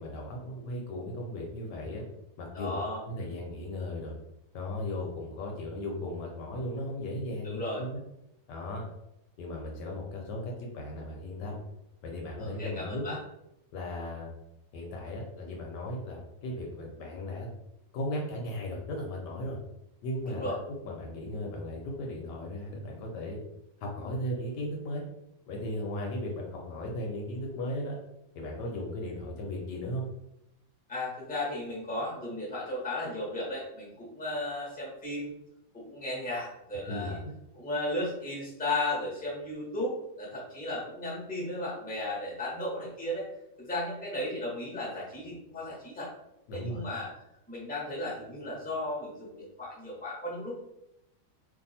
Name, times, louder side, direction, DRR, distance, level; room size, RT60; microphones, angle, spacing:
voice 1, 0.0-2.0 2.4-4.2 4.5-8.0 8.5-8.8 9.4-11.6 12.0-13.0 13.7-14.3 14.7-17.5 17.9-19.6 20.0-23.4 23.8-25.0 25.5-28.0 28.3-30.1 36.9-37.2 46.5-46.8, left 1 dB, 70° left, 0 dB, 1.2 m, -36 dB
voice 2, 2.5-3.0 7.4-7.8 12.4-13.2 20.3-20.6 30.9-35.3 35.7-37.2 37.5-39.9 40.2-43.3 43.6-46.1 46.5-47.1 47.5-50.6, left 1 dB, 5° left, -5 dB, 0.9 m, -35 dB
2.9 x 2.6 x 4.1 m, 0.84 s
omnidirectional pair, 2.0 m